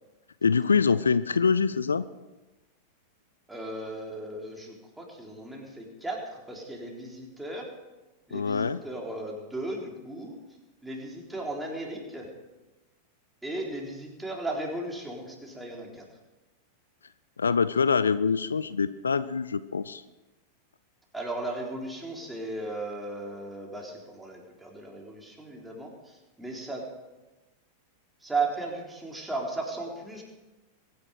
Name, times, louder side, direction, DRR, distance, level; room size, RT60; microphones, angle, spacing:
voice 1, 0.4-2.1 8.3-8.8 17.4-20.0, left 5 dB, 75° left, 15 dB, 0.5 m, -24 dB
voice 2, 3.5-7.7 8.3-10.4 10.8-12.3 13.4-16.1 21.1-26.8 28.2-30.2, right 2 dB, 5° right, -1 dB, 3.8 m, -36 dB
23.0 x 10.5 x 5.0 m, 1.1 s
figure-of-eight pair, 90°, 0 cm